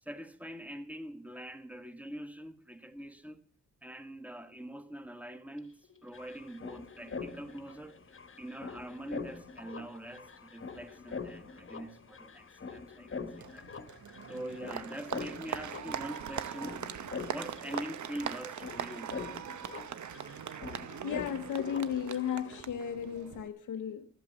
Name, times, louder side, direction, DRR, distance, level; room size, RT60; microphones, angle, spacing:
voice 1, 0.0-3.4 3.8-7.9 8.4-13.7 14.3-16.9 17.3-19.2, right 1 dB, 5° right, 1.5 m, -44 dB
sound 1, 5.6-5.7 5.8-22.6, left 5 dB, 40° left, 1.2 m, -44 dB
Applause, 13.4-23.5, right 9 dB, 65° right, 0.8 m, -41 dB
voice 2, 21.0-24.1, left 9 dB, 75° left, 0.8 m, -34 dB
13.0 x 8.2 x 7.3 m
cardioid pair, 65°, 31 cm